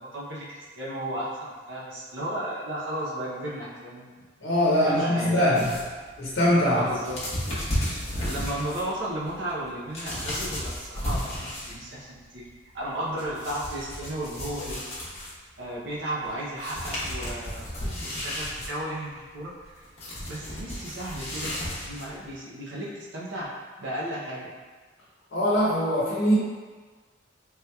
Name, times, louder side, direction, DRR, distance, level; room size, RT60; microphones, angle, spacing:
voice 1, 0.0-4.1 4.8-5.6 6.6-7.2 8.1-12.5 12.7-14.8 15.6-17.7 18.0-19.8 20.3-23.5 23.8-24.5, right 1 dB, 75° right, -6 dB, 0.6 m, -34 dB
voice 2, 4.4-5.8 6.2-6.8 25.3-26.3, equal, 75° left, -8 dB, 0.7 m, -22 dB
sound 1, 5.5-12.0 12.2-15.5 16.2-16.3 16.6-22.3, equal, 35° left, 0.8 m, -34 dB
3.4 x 2.8 x 2.2 m, 1.4 s
head